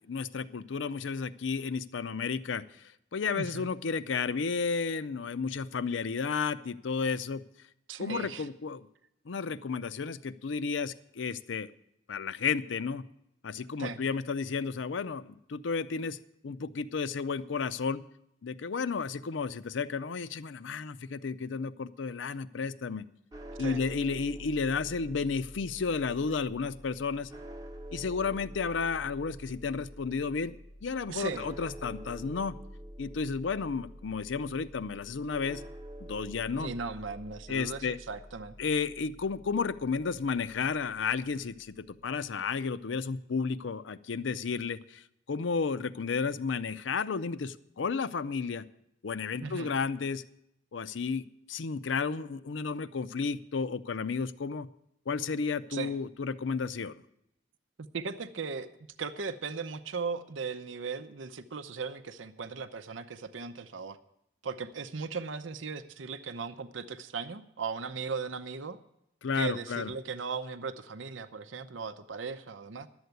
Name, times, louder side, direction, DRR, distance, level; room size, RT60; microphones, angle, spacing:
voice 1, 0.1-7.4 8.0-8.9 9.3-11.7 12.1-13.0 13.4-16.2 16.4-18.0 18.4-23.0 23.6-27.3 27.9-30.5 30.8-32.6 33.0-35.6 36.1-36.7 37.5-38.0 38.6-41.7 42.0-45.0 45.3-48.6 49.0-50.2 50.7-54.7 55.1-57.0 69.2-69.9, left 5 dB, 80° left, 15 dB, 0.5 m, -32 dB
voice 2, 3.4-3.7 7.9-8.5 13.8-14.0 23.6-23.8 31.1-31.5 36.6-38.5 49.4-49.7 55.7-55.9 57.9-58.7 59.0-64.0 64.4-68.8 69.3-72.9, right 5 dB, 90° right, 10 dB, 0.7 m, -37 dB
sound 1, 23.3-41.5, equal, 20° right, 0.8 m, -47 dB
12.0 x 8.0 x 8.0 m, 0.78 s
head